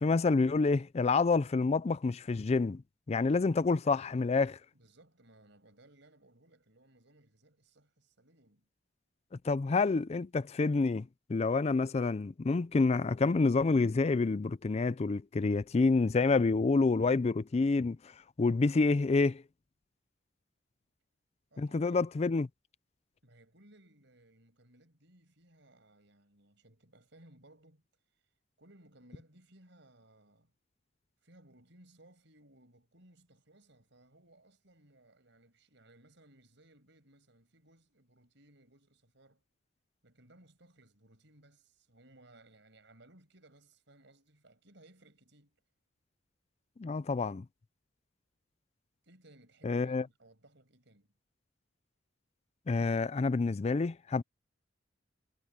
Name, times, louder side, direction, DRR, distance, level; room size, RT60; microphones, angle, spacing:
voice 1, 0.0-2.8 3.1-4.6 9.4-18.0 18.4-19.4 21.6-22.5 46.8-47.4 49.6-50.0 52.7-54.2, left 3 dB, 35° left, 0.4 m, -28 dB
voice 2, 4.7-8.7 21.5-22.0 23.2-27.9 28.6-30.5 31.2-39.4 40.0-45.6 49.0-51.1, right 1 dB, 65° right, 6.6 m, -62 dB
head